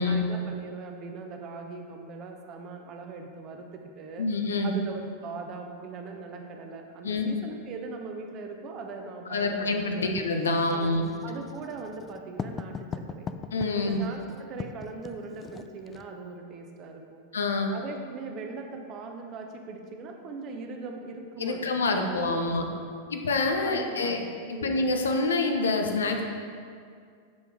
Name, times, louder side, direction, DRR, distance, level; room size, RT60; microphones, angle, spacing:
voice 1, 0.0-4.3 4.6-10.1 10.7-12.7 13.1-13.3 13.7-17.2 17.7-23.2 23.6-24.9, right 4 dB, 35° right, 3 dB, 0.8 m, -40 dB
voice 2, 4.2-4.7 7.0-7.4 9.3-11.0 13.5-14.0 17.3-17.7 21.4-22.7 23.1-24.2 24.5-26.2, left 3 dB, 70° left, 4 dB, 0.7 m, -26 dB
Writing, 10.2-16.1, left 5 dB, 20° left, 0.3 m, -40 dB
7.2 x 4.6 x 4.6 m, 2.2 s
figure-of-eight pair, 90°, 0 cm